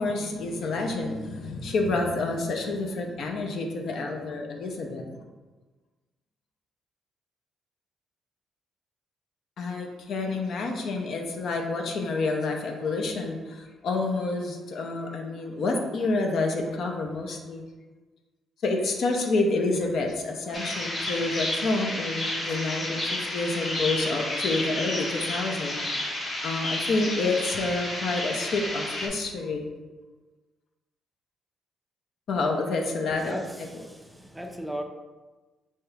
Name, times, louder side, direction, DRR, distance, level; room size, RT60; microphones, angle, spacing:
voice 1, 0.0-5.1 9.6-17.6 18.6-25.8 26.4-29.7 32.3-33.4, left 3 dB, 65° left, 3 dB, 0.5 m, -28 dB
sound 1, 20.5-29.1, left 1 dB, 35° left, 0.7 m, -31 dB
voice 2, 33.1-34.8, equal, 5° right, 3 dB, 0.4 m, -37 dB
3.5 x 2.8 x 3.2 m, 1.2 s
cardioid pair, 90°, 0 cm